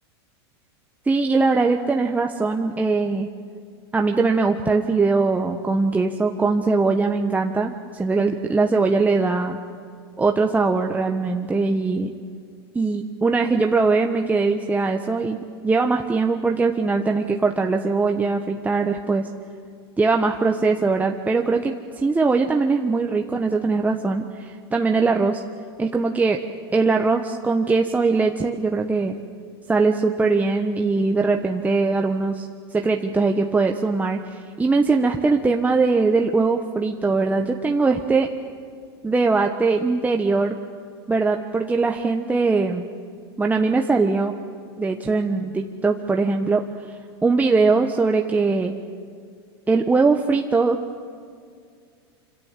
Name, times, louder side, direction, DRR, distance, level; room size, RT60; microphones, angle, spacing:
voice 1, 1.1-3.3 3.9-9.6 10.2-12.1 12.7-19.3 20.0-25.4 25.8-26.4 26.7-29.2 29.7-38.3 39.0-40.6 41.1-42.8 43.4-44.3 44.8-46.6 47.2-48.7 49.7-50.8, right 4 dB, 10° right, 3 dB, 1.2 m, -21 dB
26.5 x 26.0 x 7.5 m, 2.2 s
hypercardioid pair, 110°, 14 cm